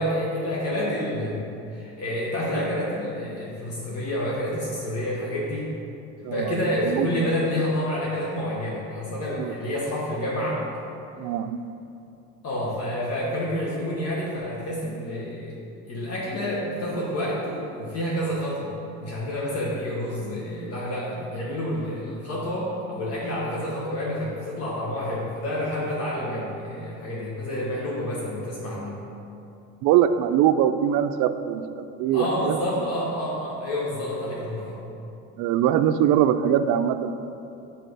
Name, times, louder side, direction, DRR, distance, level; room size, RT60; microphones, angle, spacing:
voice 1, 0.0-1.5 1.7-5.7 6.2-10.6 12.4-15.6 15.9-29.0 32.1-34.8, left 1 dB, 50° left, -5 dB, 1.3 m, -29 dB
voice 2, 6.2-7.3 9.4-9.5 11.2-11.6 29.8-31.6 32.0-32.8 35.4-37.1, right 10 dB, 70° right, 10 dB, 0.4 m, -22 dB
6.2 x 4.2 x 5.3 m, 2.7 s
cardioid pair, 110°, 31 cm